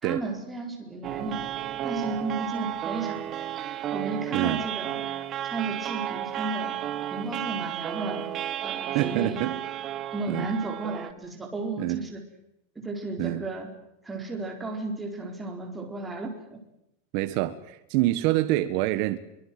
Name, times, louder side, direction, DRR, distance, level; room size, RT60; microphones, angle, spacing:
voice 1, 0.0-1.4 1.8-3.3 3.9-5.0 5.4-6.8 7.1-8.3 8.6-9.4 10.1-12.2 12.8-13.7 14.0-16.6, right 2 dB, 5° right, 4.3 m, -34 dB
sound 1, 1.0-11.1, right 11 dB, 25° right, 1.4 m, -33 dB
voice 2, 4.3-4.7 8.9-9.6 10.3-10.5 11.8-12.1 13.2-13.4 17.1-19.2, right 16 dB, 45° right, 1.4 m, -26 dB
24.0 x 23.0 x 7.7 m
supercardioid pair, 170°, 0 cm